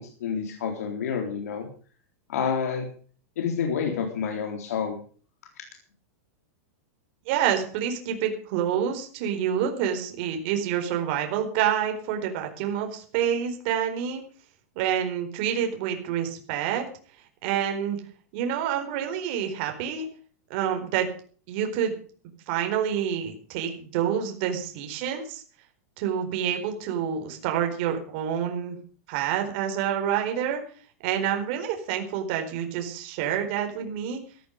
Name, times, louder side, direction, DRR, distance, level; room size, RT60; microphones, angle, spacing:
voice 1, 0.0-1.7 2.3-2.9 3.4-5.0, left 6 dB, 80° left, 3 dB, 3.9 m, -29 dB
voice 2, 7.3-14.2 14.8-16.8 17.4-18.0 18.3-20.1 20.5-21.1 21.5-21.9 22.5-25.4 26.0-28.8 29.1-30.6 31.0-34.2, right 9 dB, 45° right, 4 dB, 4.3 m, -27 dB
14.5 x 14.0 x 5.2 m, 0.43 s
supercardioid pair, 160°, 8 cm